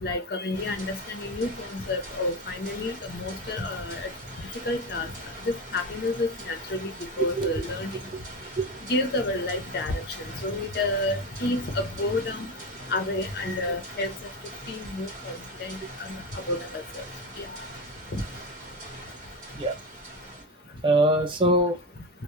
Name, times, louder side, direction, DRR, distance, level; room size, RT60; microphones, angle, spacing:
voice 1, 0.0-4.1 4.7-5.1 5.4-7.9 8.9-12.5 12.9-14.1 14.7-17.0 17.4-17.6 18.1-18.2, left 2 dB, 55° left, 0.6 m, -30 dB
sound 1, 0.5-20.4, right 1 dB, 40° right, 1.0 m, -42 dB
voice 2, 8.1-8.8 13.5-13.6 19.5-19.8 20.8-21.8, right 1 dB, 25° right, 0.4 m, -24 dB
2.2 x 2.0 x 2.9 m
head